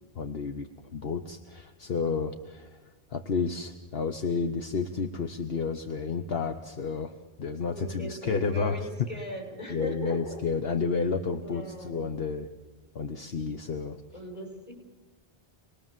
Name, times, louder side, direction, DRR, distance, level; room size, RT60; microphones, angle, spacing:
voice 1, 0.1-2.8 3.1-7.1 7.4-9.1 9.7-12.5 12.9-14.0, left 5 dB, 65° left, 6 dB, 1.3 m, -31 dB
voice 2, 7.7-10.4 11.4-12.1 14.1-14.7, equal, 25° left, 0 dB, 6.4 m, -39 dB
27.5 x 20.0 x 7.5 m, 1.2 s
omnidirectional pair, 1.1 m